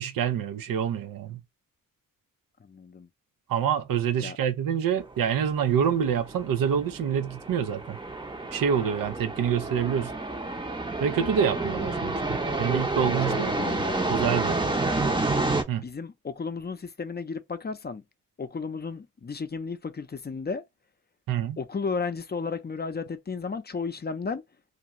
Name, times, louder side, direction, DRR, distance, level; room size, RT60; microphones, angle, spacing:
voice 1, 0.0-1.4 3.5-8.0 8.5-10.1 11.0-13.5 14.1-14.6 15.7-15.8 21.3-21.6, right 8 dB, 85° right, 0.5 m, -26 dB
voice 2, 2.6-3.1 4.2-4.4 11.7-12.4 13.3-14.0 15.8-18.0 18.4-20.6 21.6-24.4, left 4 dB, 30° left, 0.5 m, -34 dB
sound 1, 5.0-15.6, right 2 dB, 15° right, 0.6 m, -29 dB
2.5 x 2.3 x 2.9 m
cardioid pair, 60°, 33 cm